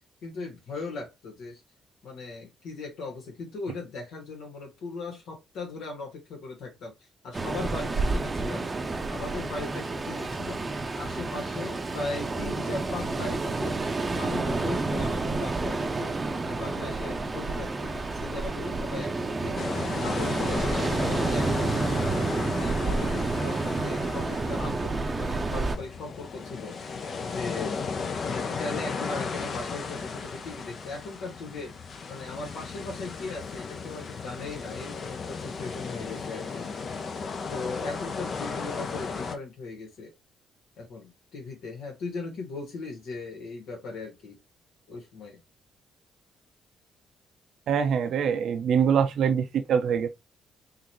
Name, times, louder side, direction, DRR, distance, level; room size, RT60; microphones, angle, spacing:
voice 1, 0.2-1.6 2.0-6.9 7.2-8.7 9.1-10.7 10.9-13.8 14.1-16.2 16.5-19.7 20.0-22.2 22.5-26.8 27.2-27.8 28.2-31.7 32.1-36.7 37.5-40.1 40.8-44.4 44.9-45.4, left 3 dB, 80° left, 1.6 m, -38 dB
Ocean, 7.3-25.8, right 3 dB, 25° right, 0.6 m, -29 dB
sound 1, 19.6-39.4, left 5 dB, 50° left, 0.6 m, -35 dB
voice 2, 47.7-50.1, right 7 dB, 70° right, 0.5 m, -24 dB
3.8 x 2.6 x 3.0 m
cardioid pair, 90°, 0 cm